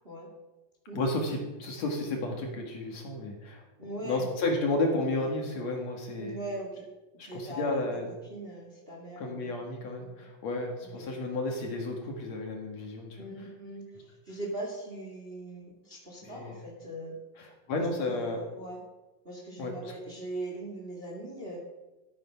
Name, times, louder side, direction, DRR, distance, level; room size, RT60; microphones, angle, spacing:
voice 1, 0.9-3.6 4.0-6.4 7.2-8.1 9.2-13.2 16.2-16.6 17.4-18.4 19.6-19.9, left 2 dB, 55° left, 2 dB, 2.7 m, -32 dB
voice 2, 3.8-4.3 6.2-6.8 7.1-8.0 8.3-9.6 10.0-10.3 10.8-11.1 13.2-17.2 18.0-18.8 19.2-21.6, right 1 dB, 20° right, -1 dB, 2.0 m, -40 dB
14.0 x 9.0 x 5.6 m, 1.1 s
omnidirectional pair, 3.8 m